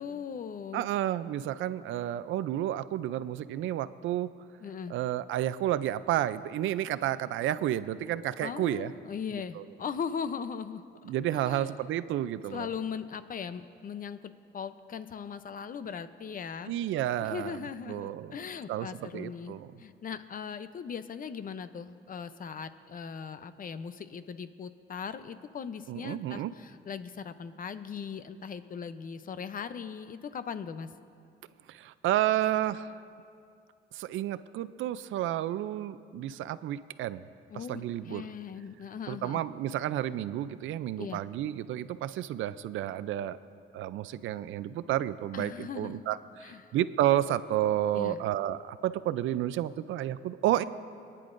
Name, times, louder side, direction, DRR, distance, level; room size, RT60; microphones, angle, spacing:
voice 1, 0.0-0.9 4.6-4.9 8.4-11.7 12.5-16.7 17.2-31.0 37.5-39.4 41.0-41.2 45.3-46.0 46.4-46.7 47.9-48.2, left 6 dB, 45° left, 12 dB, 0.6 m, -39 dB
voice 2, 0.7-4.3 4.9-8.9 9.6-9.7 11.0-12.7 16.7-17.6 17.9-18.3 18.7-19.7 25.9-26.5 31.7-32.9 33.9-37.2 37.7-38.2 39.1-43.4 43.7-50.6, right 12 dB, 80° right, 15 dB, 0.5 m, -31 dB
27.5 x 10.0 x 2.6 m, 2.4 s
cardioid pair, 90°, 20 cm